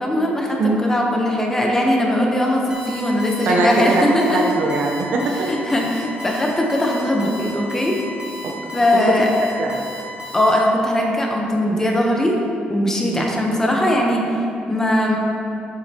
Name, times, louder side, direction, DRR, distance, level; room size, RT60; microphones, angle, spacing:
voice 1, 0.0-4.5 5.5-8.0 8.7-9.3 10.3-12.4 12.7-14.2 14.7-15.2, left 1 dB, 15° left, -1 dB, 0.8 m, -20 dB
Alarm, 2.7-10.5, left 1 dB, 20° right, 1.2 m, -34 dB
voice 2, 3.5-5.5 9.6-9.8 11.8-12.0 13.1-13.3, right 2 dB, 65° right, 0 dB, 0.8 m, -21 dB
7.7 x 6.4 x 2.9 m, 2.8 s
cardioid pair, 130°, 3 cm